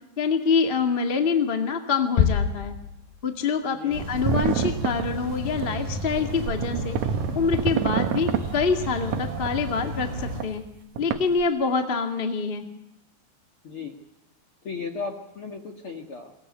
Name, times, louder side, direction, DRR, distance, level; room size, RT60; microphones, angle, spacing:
voice 1, 0.2-2.7 3.2-7.0 7.3-10.6 11.0-12.6, left 5 dB, 25° left, 5 dB, 1.2 m, -25 dB
sound 1, 2.2-3.6, left 8 dB, 70° left, 3.0 m, -25 dB
voice 2, 3.7-4.0 13.6-14.0 14.6-16.3, left 5 dB, 50° left, 3 dB, 1.8 m, -35 dB
sound 2, 3.9-10.4, right 1 dB, 45° right, 6.0 m, -33 dB
sound 3, 4.1-5.0 5.6-5.7 6.2-6.3 6.5-8.4 9.1-9.7 10.4-10.5 11.0-11.4, right 8 dB, 65° right, 2.0 m, -26 dB
22.5 x 19.0 x 9.5 m, 0.79 s
omnidirectional pair, 4.7 m